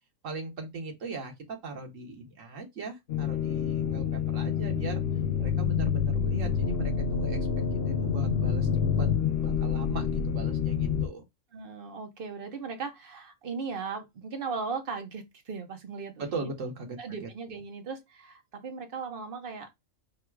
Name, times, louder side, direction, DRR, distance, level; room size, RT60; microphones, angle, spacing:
voice 1, 0.2-5.0 5.4-7.4 7.8-8.7 9.0-11.2 16.2-17.0 17.2-17.3, right 3 dB, 75° right, 1.6 m, -39 dB
sound 1, 3.1-11.1, left 7 dB, 60° left, 0.8 m, -27 dB
voice 2, 11.5-16.5 17.0-19.7, right 5 dB, 50° right, 0.9 m, -37 dB
3.7 x 2.3 x 4.5 m
omnidirectional pair, 1.4 m